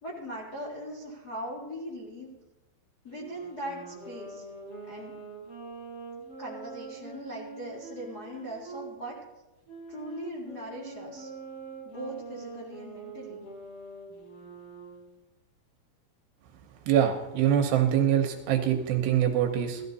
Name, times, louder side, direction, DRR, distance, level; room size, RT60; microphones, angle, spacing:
voice 1, 0.0-2.4 3.0-4.4 4.9-5.2 6.4-9.2 9.9-11.3 11.8-13.5, equal, 50° left, -4 dB, 1.1 m, -40 dB
Wind instrument woodwind instrument, 3.1-8.9 9.6-15.1, right 4 dB, 30° left, 4.6 m, -44 dB
voice 2, 16.9-19.8, right 10 dB, 75° right, 5 dB, 2.7 m, -24 dB
15.5 x 14.0 x 4.1 m, 1.0 s
omnidirectional pair, 5.5 m